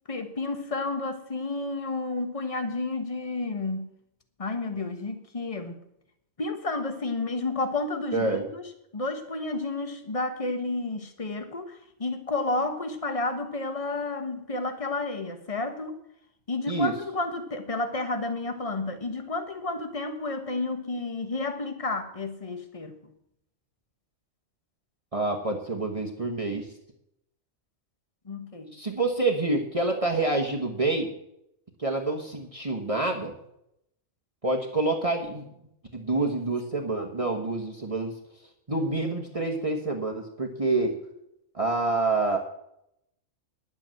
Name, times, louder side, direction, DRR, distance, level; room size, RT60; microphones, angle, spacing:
voice 1, 0.1-3.9 4.4-5.8 6.4-16.0 16.5-22.9 28.2-28.8, left 2 dB, 25° left, 8 dB, 1.2 m, -31 dB
voice 2, 8.1-8.4 16.7-16.9 25.1-26.7 28.7-31.1 31.8-33.3 34.4-35.5 35.9-38.1 38.7-40.9 41.5-42.4, right 2 dB, 25° right, 2 dB, 1.2 m, -27 dB
10.5 x 7.9 x 7.6 m, 0.77 s
omnidirectional pair, 1.4 m